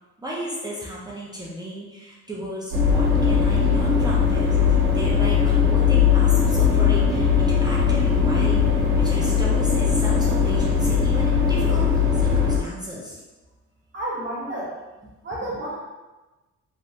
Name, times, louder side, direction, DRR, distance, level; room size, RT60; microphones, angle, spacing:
voice 1, 0.2-13.2 15.5-15.6, right 1 dB, 15° right, -5 dB, 0.5 m, -34 dB
sound 1, 2.7-12.6, left 6 dB, 90° right, 0.7 m, -19 dB
voice 2, 13.9-14.8 15.2-15.8, right 1 dB, 40° right, -5 dB, 1.1 m, -30 dB
2.9 x 2.2 x 2.7 m, 1.1 s
cardioid pair, 90°, 30 cm